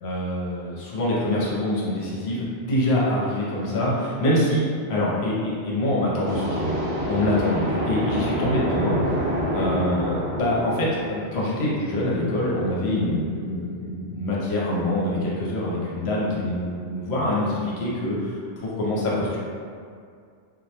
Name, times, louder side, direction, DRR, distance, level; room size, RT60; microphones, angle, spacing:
voice 1, 0.0-4.6 4.9-6.8 7.1-9.3 9.5-19.4, left 1 dB, 70° left, -6 dB, 0.9 m, -25 dB
sound 1, 6.3-11.9, equal, 75° right, 0.8 m, -27 dB
2.2 x 2.1 x 2.7 m, 2.2 s
omnidirectional pair, 1.2 m